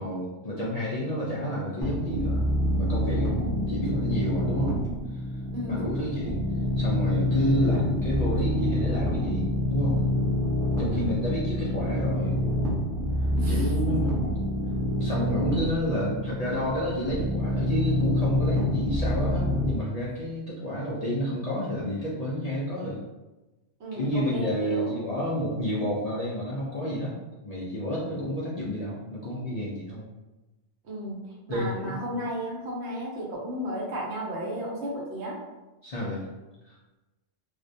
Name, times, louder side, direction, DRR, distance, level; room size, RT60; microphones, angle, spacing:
voice 1, 0.0-4.8 5.1-5.2 5.7-6.4 6.8-10.0 10.8-12.4 13.5-14.1 14.9-23.0 23.9-27.2 27.4-30.1 31.5-32.1 35.8-36.3 36.6-36.8, equal, 65° left, -6 dB, 0.3 m, -30 dB
sound 1, 1.8-19.7, left 1 dB, 5° left, 0.5 m, -27 dB
voice 2, 5.5-5.9 10.9-11.3 13.4-13.8 23.8-24.9 30.8-35.4, equal, 70° right, -3 dB, 0.9 m, -34 dB
2.3 x 2.1 x 2.6 m, 1.1 s
omnidirectional pair, 1.2 m